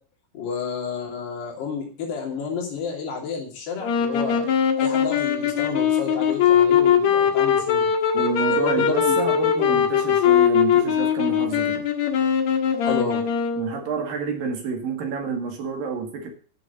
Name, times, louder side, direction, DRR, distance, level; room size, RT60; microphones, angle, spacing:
voice 1, 0.3-4.5 4.8-7.9 8.4-9.2 9.7-9.8 12.8-13.2, left 5 dB, 80° left, 0 dB, 5.0 m, -31 dB
sound 1, 3.8-13.8, left 8 dB, 55° left, 2.4 m, -21 dB
voice 2, 8.1-11.9 13.6-16.3, right 5 dB, 60° right, 3 dB, 3.7 m, -29 dB
13.0 x 6.8 x 6.8 m, 0.41 s
omnidirectional pair, 4.6 m